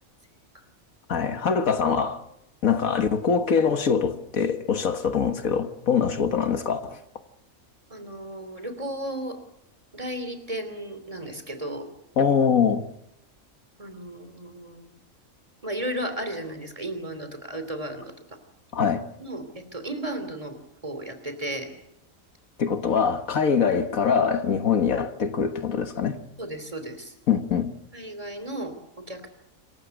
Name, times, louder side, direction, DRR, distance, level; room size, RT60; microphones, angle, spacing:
voice 1, 1.1-2.2 2.6-7.0 12.2-12.8 18.7-19.1 22.6-26.2 27.3-27.7, left 6 dB, 75° left, 1.8 m, -23 dB
voice 2, 7.9-9.4 9.9-11.9 13.8-14.9 15.6-18.1 19.2-20.6 20.8-21.7 26.4-27.1 27.9-29.3, right 1 dB, 25° right, 3.0 m, -34 dB
26.5 x 15.0 x 8.1 m
omnidirectional pair, 1.5 m